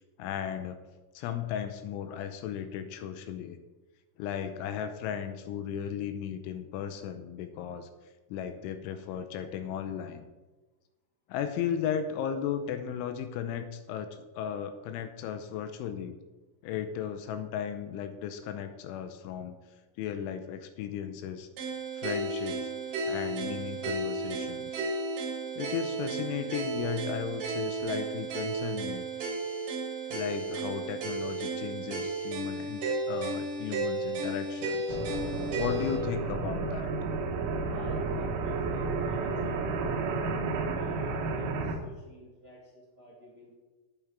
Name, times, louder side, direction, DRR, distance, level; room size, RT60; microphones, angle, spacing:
voice 1, 0.2-0.8 1.1-3.6 4.2-7.9 8.3-10.3 11.3-16.2 16.6-19.6 20.0-21.5 22.0-22.7 23.1-24.8 25.6-29.0 30.1-35.0 35.6-36.9, left 9 dB, 80° left, 9 dB, 3.1 m, -35 dB
sound 1, 21.6-36.0, right 3 dB, 55° right, 2.7 m, -33 dB
sound 2, 34.9-41.8, right 4 dB, 80° right, 3.8 m, -31 dB
voice 2, 37.6-39.6 40.7-43.5, right 1 dB, 40° right, -6 dB, 1.5 m, -50 dB
11.0 x 9.4 x 4.7 m, 1.2 s
omnidirectional pair, 5.6 m